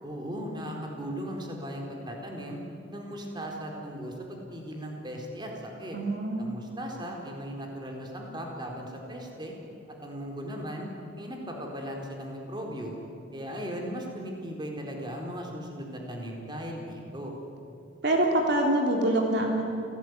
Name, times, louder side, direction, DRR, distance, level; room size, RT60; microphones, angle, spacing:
voice 1, 0.0-2.6 2.9-6.0 6.4-9.5 10.0-10.9 11.2-13.0 13.3-17.3, equal, 25° right, 1 dB, 4.3 m, -37 dB
voice 2, 5.9-6.5 18.0-19.6, right 1 dB, 60° right, 1 dB, 3.3 m, -25 dB
28.5 x 18.0 x 9.7 m, 2.7 s
head